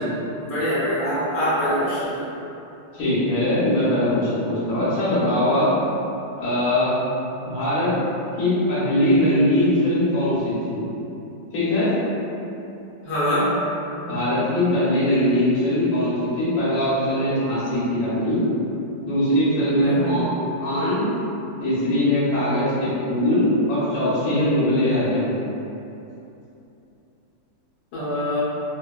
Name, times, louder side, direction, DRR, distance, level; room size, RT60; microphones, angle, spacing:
voice 1, 0.4-2.3 13.0-13.5 19.8-20.2 27.9-28.4, equal, 75° left, -11 dB, 1.3 m, -24 dB
voice 2, 2.9-5.7 6.4-6.9 7.4-7.9 8.4-10.8 11.5-11.9 14.0-18.5 19.0-20.3 20.6-21.1 21.6-25.3, left 1 dB, 60° left, -10 dB, 1.3 m, -21 dB
3.4 x 2.2 x 2.2 m, 2.8 s
omnidirectional pair, 1.9 m